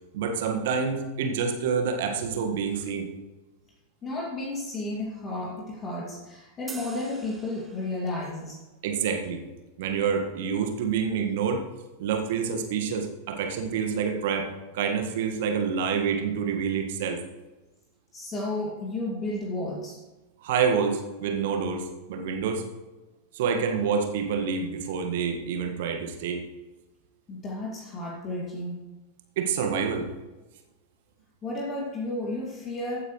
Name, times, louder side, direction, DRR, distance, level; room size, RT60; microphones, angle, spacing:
voice 1, 0.1-3.1 8.8-9.4 9.8-11.7 12.0-14.5 14.7-17.2 20.4-22.7 23.3-26.4 29.3-30.1, right 6 dB, 55° right, 4 dB, 1.7 m, -27 dB
voice 2, 4.0-8.6 18.1-20.0 27.3-28.8 31.4-33.0, left 2 dB, 25° left, -2 dB, 2.4 m, -32 dB
sound 1, 6.7-8.3, right 4 dB, 15° right, 1.3 m, -45 dB
15.5 x 8.8 x 3.2 m, 1.1 s
figure-of-eight pair, 90°, 0 cm